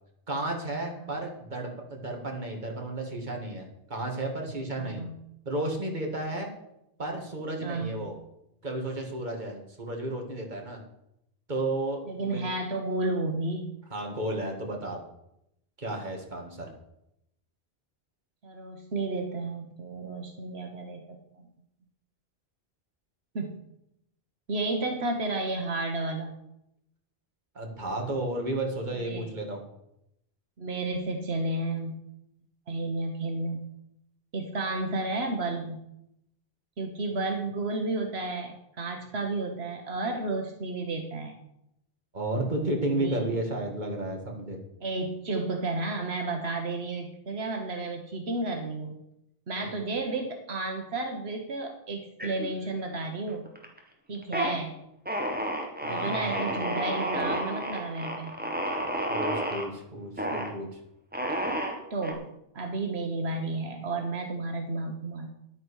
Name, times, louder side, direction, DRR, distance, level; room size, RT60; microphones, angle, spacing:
voice 1, 0.3-5.0 5.5-6.5 7.0-8.1 8.6-10.8 11.5-12.5 13.9-15.0 15.8-16.7 27.5-29.6 42.1-44.6 49.6-49.8 55.8-56.4 59.1-60.7, right 1 dB, 50° right, 1 dB, 2.4 m, -33 dB
voice 2, 4.8-5.2 7.6-8.0 12.0-13.7 18.4-21.4 23.3-23.6 24.5-26.3 29.0-29.2 30.6-32.0 32.7-33.7 34.3-35.8 36.8-41.4 43.0-43.3 44.8-49.0 49.5-53.5 54.1-54.8 55.9-58.3 61.9-65.3, right 2 dB, 85° right, 3 dB, 1.6 m, -32 dB
sound 1, 52.2-52.9 53.3-53.8 54.1-54.5 55.1-59.7 60.2-60.5 61.1-62.1, right 1 dB, 10° right, 1.8 m, -31 dB
10.5 x 8.8 x 6.4 m, 0.79 s
omnidirectional pair, 1.0 m